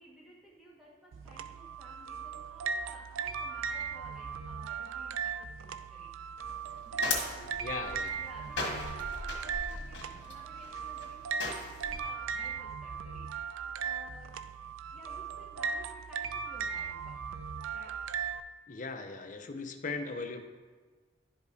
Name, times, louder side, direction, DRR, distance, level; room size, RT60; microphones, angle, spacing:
voice 1, 0.0-6.1 6.7-13.3 13.6-17.2 17.7-18.0, equal, ahead, -7 dB, 1.6 m, -55 dB
sound 1, 1.1-18.4, right 6 dB, 90° right, 0.3 m, -38 dB
sound 2, 6.4-12.0, left 3 dB, 60° left, 1.5 m, -38 dB
voice 2, 7.6-8.1 18.7-20.4, left 3 dB, 40° left, 7 dB, 0.5 m, -38 dB
11.0 x 5.2 x 2.7 m, 1.4 s
head